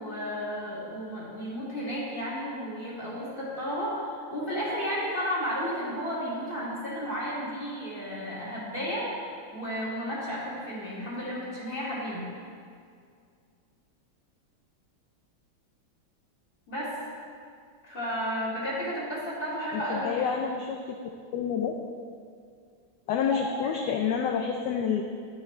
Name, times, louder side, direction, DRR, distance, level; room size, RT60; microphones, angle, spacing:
voice 1, 0.0-12.2 16.7-16.9 17.8-20.3 23.3-23.7, equal, 25° left, -7 dB, 2.7 m, -33 dB
voice 2, 19.7-20.8 21.3-21.7 23.1-25.0, left 7 dB, 70° left, 3 dB, 1.1 m, -28 dB
10.5 x 9.9 x 3.3 m, 2.2 s
omnidirectional pair, 2.2 m